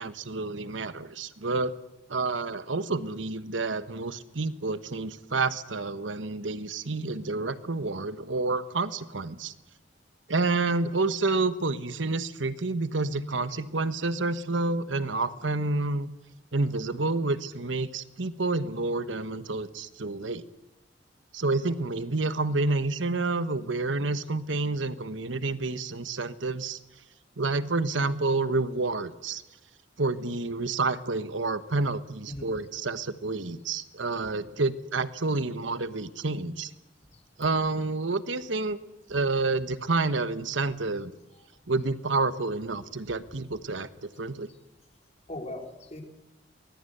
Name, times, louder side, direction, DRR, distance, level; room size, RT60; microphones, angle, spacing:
voice 1, 0.0-1.7 2.1-9.5 10.3-16.1 16.5-20.4 21.3-26.8 27.4-29.4 30.0-36.7 37.4-38.8 39.1-41.1 41.7-44.5, right 3 dB, 85° right, 13 dB, 1.2 m, -29 dB
voice 2, 34.3-34.6 37.1-37.2 45.3-46.0, left 1 dB, 35° left, 3 dB, 3.9 m, -40 dB
23.5 x 20.5 x 8.0 m, 0.94 s
head